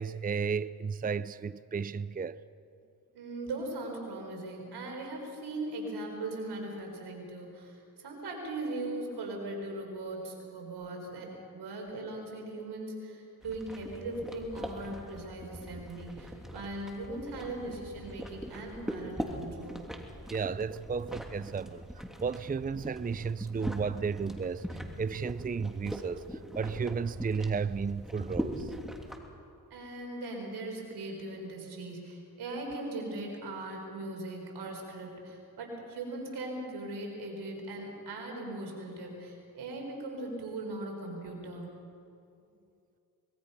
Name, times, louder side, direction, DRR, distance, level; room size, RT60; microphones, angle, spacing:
voice 1, 0.0-2.4 20.3-28.7, right 5 dB, 25° right, 0.5 m, -33 dB
voice 2, 3.1-19.8 29.7-41.8, right 2 dB, 90° right, 4.5 m, -39 dB
sound 1, 13.4-29.2, equal, ahead, 3.0 m, -41 dB
24.5 x 21.0 x 5.6 m
cardioid pair, 55°, 38 cm